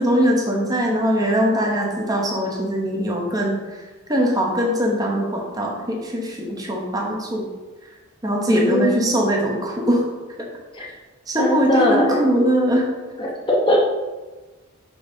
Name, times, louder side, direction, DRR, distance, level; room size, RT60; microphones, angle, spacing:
voice 1, 0.0-3.8 4.1-7.5 8.2-10.0 10.8-10.9 11.3-12.9, equal, 15° right, -1 dB, 0.8 m, -21 dB
voice 2, 8.5-9.2 10.7-10.9 11.4-12.3 13.2-13.9, equal, 25° left, -1 dB, 0.8 m, -20 dB
5.3 x 3.9 x 5.2 m, 1.2 s
head